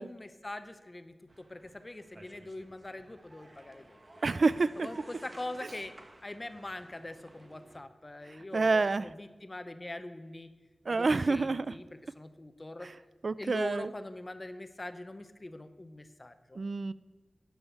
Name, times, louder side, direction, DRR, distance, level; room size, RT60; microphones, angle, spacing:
voice 1, 0.0-4.0 4.8-5.9 6.2-10.5 10.9-12.9 13.4-16.6, left 2 dB, 35° left, 10 dB, 0.7 m, -43 dB
sound 1, 1.3-7.8, right 1 dB, 40° right, 1.2 m, -55 dB
voice 2, 4.2-4.9 8.5-9.1 10.9-11.7 13.2-13.9 16.6-16.9, right 3 dB, 65° right, 17 dB, 0.3 m, -27 dB
11.0 x 5.8 x 8.4 m, 1.3 s
wide cardioid pair, 65°, 0 cm